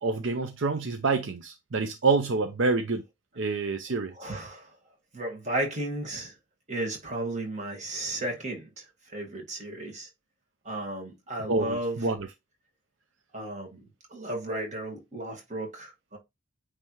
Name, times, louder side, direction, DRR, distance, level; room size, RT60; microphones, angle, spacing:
voice 1, 0.0-3.0 3.4-4.1 11.5-12.3, right 3 dB, 65° right, 0.6 m, -27 dB
voice 2, 4.2-4.8 5.1-6.3 6.7-10.1 10.6-12.0 13.3-13.8 14.1-16.2, right 1 dB, 35° right, 2.0 m, -34 dB
9.0 x 3.3 x 3.1 m
head